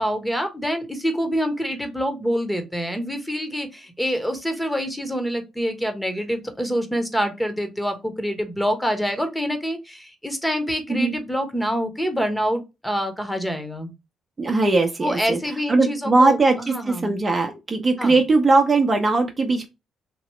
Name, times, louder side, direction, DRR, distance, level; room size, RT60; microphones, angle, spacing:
voice 1, 0.0-13.9 15.0-17.2 18.0-18.2, equal, 5° left, 1.2 m, -26 dB
voice 2, 14.4-15.4 15.7-19.7, right 3 dB, 35° right, 0.8 m, -19 dB
3.0 x 2.8 x 3.2 m
hypercardioid pair, 50°, 0 cm